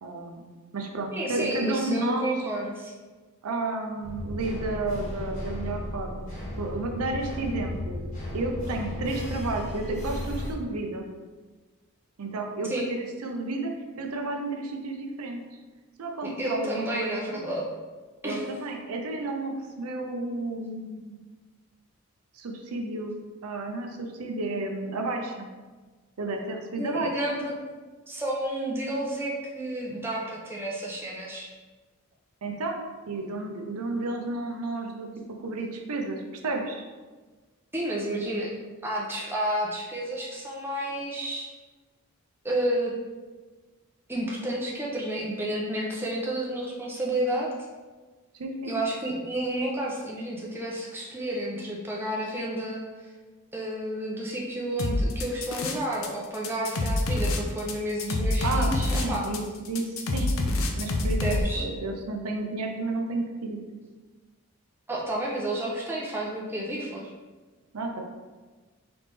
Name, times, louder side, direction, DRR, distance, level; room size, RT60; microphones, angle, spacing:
voice 1, 0.0-2.3 3.4-6.2 6.6-8.0 8.3-11.1 12.2-13.7 14.0-15.4 16.0-17.4 18.2-21.2 22.3-23.2 23.4-25.5 26.2-27.4 32.4-32.8 33.1-35.1 35.4-36.8 38.1-38.3 48.3-48.8 58.4-59.8 60.1-60.4 60.7-63.6 67.7-68.0, right 2 dB, 80° right, 2 dB, 0.6 m, -32 dB
voice 2, 1.1-2.9 12.7-12.9 16.2-17.7 18.2-18.4 26.8-27.5 28.1-31.5 37.7-38.5 38.8-41.5 42.4-42.9 44.1-47.5 48.6-52.8 53.5-59.3 61.2-61.7 64.9-67.1, right 1 dB, 10° right, -4 dB, 0.6 m, -31 dB
sound 1, 4.0-10.5, left 1 dB, 35° left, 1.2 m, -35 dB
sound 2, 54.8-56.1 56.3-61.4, left 2 dB, 65° left, 0.5 m, -26 dB
4.0 x 3.3 x 3.3 m, 1.3 s
head